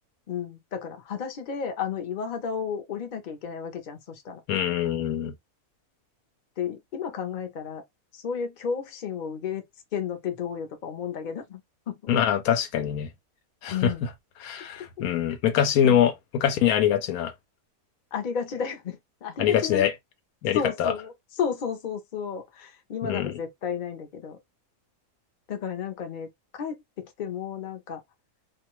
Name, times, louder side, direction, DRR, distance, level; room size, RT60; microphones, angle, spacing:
voice 1, 0.3-4.4 6.6-7.8 8.1-9.6 9.9-11.6 11.9-12.1 13.7-14.1 15.8-16.0 18.1-19.9 20.5-24.4 25.5-26.3 26.6-28.0, left 7 dB, 45° left, 0.6 m, -32 dB
voice 2, 4.5-5.3 12.1-13.1 13.6-13.9 14.4-17.3 19.4-19.9 20.4-20.9 23.0-23.4, left 9 dB, 80° left, 1.1 m, -24 dB
2.5 x 2.3 x 2.9 m
omnidirectional pair, 1.5 m